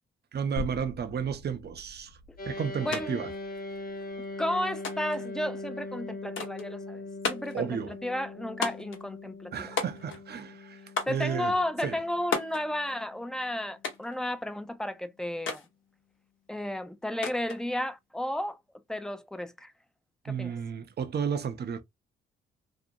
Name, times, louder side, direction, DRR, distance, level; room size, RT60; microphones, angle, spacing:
voice 1, 0.3-2.1 2.5-3.3 7.5-7.9 9.5-10.8 11.1-11.5 11.8-12.0 20.3-21.8, right 7 dB, 50° right, 0.6 m, -32 dB
sound 1, 0.6-4.7 5.1-5.2 6.6-6.7, left 2 dB, 85° right, 0.9 m, -43 dB
sound 2, 2.4-13.9, left 2 dB, 45° left, 0.8 m, -41 dB
voice 2, 2.8-3.3 4.4-7.0 7.3-9.7 11.1-15.6 16.5-18.6 18.9-19.7 20.2-20.5, left 1 dB, 5° left, 0.5 m, -33 dB
sound 3, 2.9-3.0 3.3-4.1 4.8-5.3 6.4-6.7 7.2-7.6 8.6-9.0 9.8-10.3 11.0-11.3 12.3-12.6 13.8-14.2 15.5-15.7 17.2-17.6, left 5 dB, 65° left, 0.8 m, -33 dB
2.5 x 2.0 x 2.6 m
supercardioid pair, 55°, 21 cm